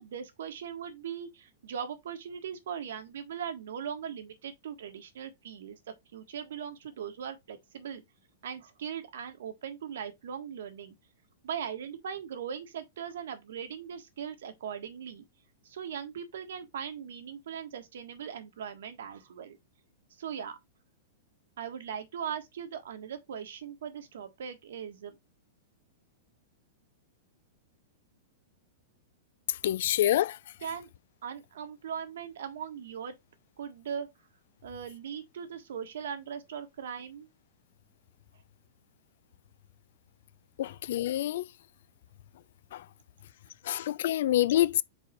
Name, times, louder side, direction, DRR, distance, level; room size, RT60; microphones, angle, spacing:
voice 1, 0.0-8.0 8.4-10.9 11.4-15.2 15.6-19.6 20.2-20.6 21.6-25.1 30.6-30.9 31.2-33.1 33.6-34.1 34.6-37.3, right 8 dB, 80° right, 1.4 m, -39 dB
voice 2, 29.6-30.4 40.6-41.4 42.7-42.8 43.7-44.8, left 13 dB, 65° left, 0.4 m, -26 dB
4.8 x 4.6 x 4.4 m
supercardioid pair, 150°, 0 cm